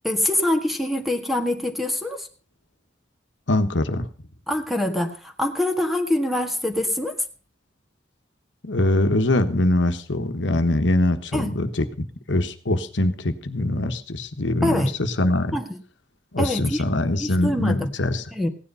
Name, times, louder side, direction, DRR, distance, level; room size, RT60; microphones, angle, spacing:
voice 1, 0.0-2.3 4.5-7.1 11.3-11.5 14.6-14.9 15.5-15.7 16.4-16.8 17.2-17.9 18.3-18.5, left 1 dB, ahead, 5 dB, 1.7 m, -24 dB
voice 2, 3.5-4.1 8.6-15.6 16.3-18.2, left 1 dB, 85° left, 8 dB, 1.3 m, -23 dB
16.5 x 10.0 x 5.6 m, 0.39 s
head